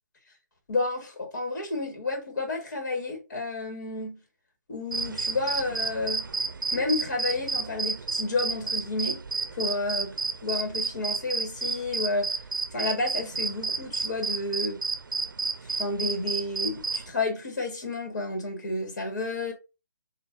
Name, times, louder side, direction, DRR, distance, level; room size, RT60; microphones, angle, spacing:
voice 1, 0.7-4.2 4.7-6.3 6.7-9.2 9.5-10.1 10.4-12.4 12.7-14.8 15.6-19.5, left 2 dB, 60° left, 1.8 m, -31 dB
sound 1, 4.9-17.1, right 4 dB, 90° right, 0.5 m, -31 dB
6.0 x 2.6 x 2.6 m
hypercardioid pair, 155°, 10 cm